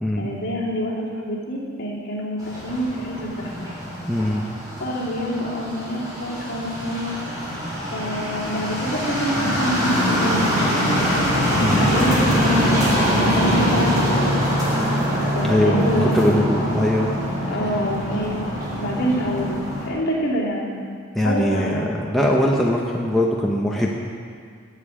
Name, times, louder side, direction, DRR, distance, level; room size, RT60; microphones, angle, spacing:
voice 1, 0.2-3.7 4.8-7.1 7.9-11.1 11.8-12.9 13.2-14.3 15.3-16.4 17.5-18.4 18.8-19.6 19.9-20.8 21.2-21.9, equal, 55° left, -6 dB, 2.9 m, -26 dB
sound 1, 2.4-19.9, equal, 20° right, 3.7 m, -23 dB
voice 2, 4.1-4.4 11.6-11.9 15.4-17.1 21.1-24.0, equal, ahead, -3 dB, 0.8 m, -21 dB
17.0 x 7.8 x 4.9 m, 2.1 s
head